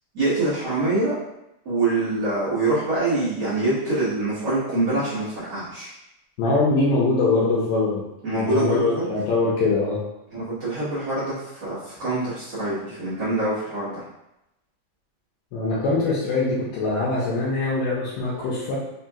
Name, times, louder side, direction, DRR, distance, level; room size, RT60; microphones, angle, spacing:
voice 1, 0.1-1.1 1.6-5.9 8.2-9.1 10.3-14.0, right 2 dB, 70° right, -13 dB, 1.0 m, -25 dB
voice 2, 6.4-8.0 8.3-10.0 15.5-18.8, left 3 dB, 80° left, -6 dB, 2.2 m, -22 dB
5.4 x 2.8 x 2.3 m, 0.89 s
omnidirectional pair, 4.2 m